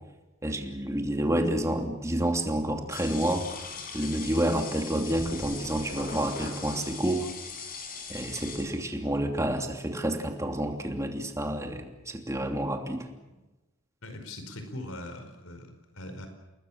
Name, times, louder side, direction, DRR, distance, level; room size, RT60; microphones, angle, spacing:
voice 1, 0.4-3.5 3.9-7.3 8.1-13.0, right 1 dB, 15° right, 4 dB, 2.8 m, -29 dB
sound 1, 2.9-9.0, left 4 dB, 40° left, 6.1 m, -40 dB
voice 2, 14.0-16.3, left 1 dB, 85° left, 6 dB, 4.8 m, -41 dB
29.5 x 21.0 x 7.3 m, 1.1 s
head